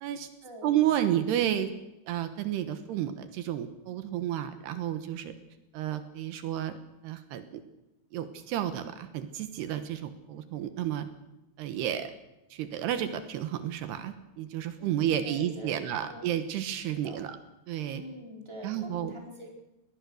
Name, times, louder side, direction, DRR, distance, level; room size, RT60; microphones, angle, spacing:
voice 1, 0.6-1.7 2.1-5.3 5.7-6.8 7.0-7.6 8.1-11.1 11.6-12.1 12.5-17.4 17.7-18.0 18.6-19.1, right 11 dB, 80° right, 9 dB, 3.3 m, -31 dB
voice 2, 14.8-16.3 16.8-17.2 17.9-19.5, equal, 5° right, 0 dB, 4.4 m, -45 dB
22.0 x 19.0 x 6.5 m, 0.95 s
omnidirectional pair, 4.8 m